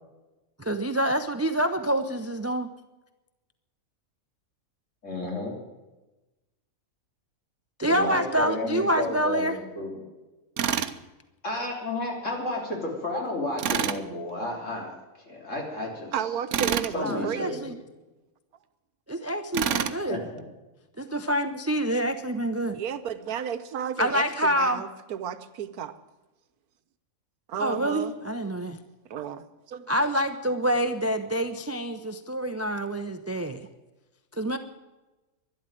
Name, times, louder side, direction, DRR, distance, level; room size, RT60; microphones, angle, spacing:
voice 1, 0.6-2.7 7.8-9.6 17.0-17.8 19.1-20.2 21.0-22.8 24.0-24.8 27.6-28.8 29.9-33.6 34.3-34.6, right 1 dB, 20° right, 9 dB, 0.4 m, -27 dB
voice 2, 5.0-5.6 7.8-9.5 9.7-10.0 11.4-15.0 15.2-16.1 16.9-17.7 20.1-20.4, left 2 dB, 55° left, -1 dB, 3.8 m, -32 dB
Tools, 10.6-11.0 13.6-14.0 16.5-16.9 19.5-20.0, right 8 dB, 60° right, 1.0 m, -27 dB
voice 3, 16.1-17.6 22.7-25.9 27.5-28.1 29.1-29.9, right 8 dB, 85° right, 11 dB, 1.4 m, -33 dB
12.0 x 11.5 x 9.1 m, 1.1 s
omnidirectional pair, 1.5 m